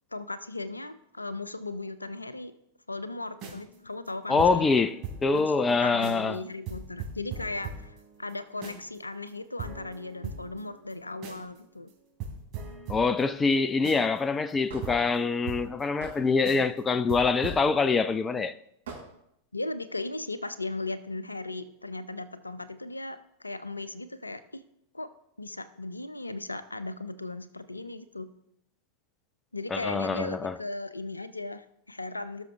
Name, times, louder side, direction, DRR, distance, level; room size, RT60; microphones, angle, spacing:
voice 1, 0.1-2.5 2.9-4.7 5.3-11.9 19.5-24.6 24.9-25.1 25.4-28.3 29.5-32.5, left 2 dB, 80° left, 0.6 m, -37 dB
sound 1, 3.3-5.4 5.7-5.8 6.0-6.4 6.7-9.0 9.3-9.4 9.6-11.6 11.9-12.0 12.2-16.2 16.4-16.8 17.1-17.6, right 5 dB, 35° right, 3.7 m, -41 dB
voice 2, 4.3-5.0 5.2-6.4 12.9-18.5 29.7-30.6, left 4 dB, 15° left, 0.5 m, -25 dB
Hammer / Wood, 14.7-14.9 16.0-16.2 17.4-17.7 18.9-19.0, right 3 dB, 60° right, 4.5 m, -40 dB
18.5 x 6.4 x 3.4 m
figure-of-eight pair, 90°, 0 cm